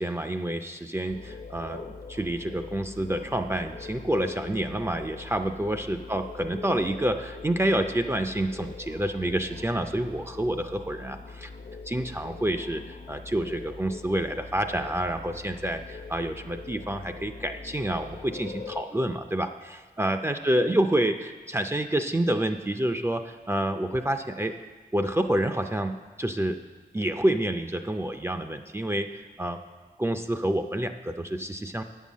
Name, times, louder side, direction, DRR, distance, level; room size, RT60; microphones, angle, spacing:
voice 1, 0.0-11.5 11.9-19.5 20.0-24.5 24.9-25.9 26.2-26.6 26.9-29.1 29.4-29.6 30.0-31.8, right 1 dB, 15° right, 6 dB, 0.4 m, -28 dB
sound 1, 1.1-18.8, left 4 dB, 65° left, 0.8 m, -42 dB
8.3 x 5.5 x 7.3 m, 1.4 s
wide cardioid pair, 85°, 16 cm